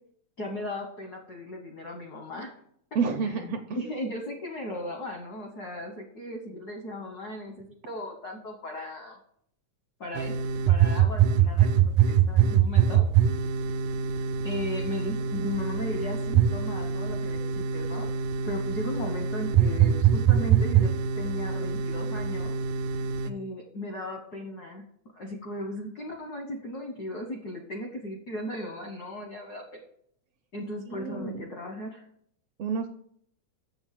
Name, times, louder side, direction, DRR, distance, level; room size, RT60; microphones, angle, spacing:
voice 1, 0.4-2.5 3.2-3.3 3.7-9.2 10.0-10.3 10.7-13.0 14.1-18.1 18.4-22.5 23.2-24.8 25.1-29.8 30.5-32.0, left 1 dB, 70° left, 3 dB, 0.9 m, -36 dB
voice 2, 2.9-3.6 30.9-31.4 32.6-32.9, right 5 dB, 70° right, 6 dB, 1.6 m, -29 dB
sound 1, 10.1-23.3, right 8 dB, 90° right, 2.1 m, -24 dB
7.1 x 7.0 x 7.4 m, 0.68 s
omnidirectional pair, 3.5 m